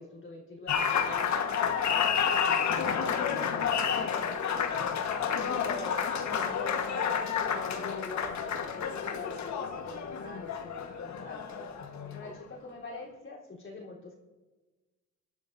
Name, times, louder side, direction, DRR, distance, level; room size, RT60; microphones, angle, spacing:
voice 1, 0.0-1.5 1.9-11.7 12.1-14.1, left 3 dB, 40° left, -4 dB, 3.8 m, -45 dB
Applause, 0.7-12.4, left 7 dB, 65° left, 1.5 m, -30 dB
25.5 x 11.5 x 2.7 m, 1.2 s
cardioid pair, 90°, 30 cm